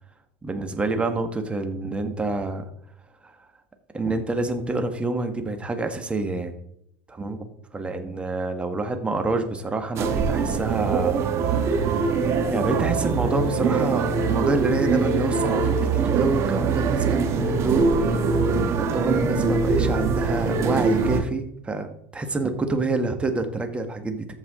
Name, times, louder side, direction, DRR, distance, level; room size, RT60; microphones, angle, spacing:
voice 1, 0.4-2.7 3.2-3.3 3.9-6.6 7.1-7.4 7.7-18.2 18.7-21.9 22.1-24.3, right 3 dB, 20° right, 6 dB, 1.5 m, -27 dB
sound 1, 10.0-21.2, right 4 dB, 50° right, 1.4 m, -23 dB
14.0 x 4.8 x 3.8 m, 0.73 s
hypercardioid pair, 85°, 6 cm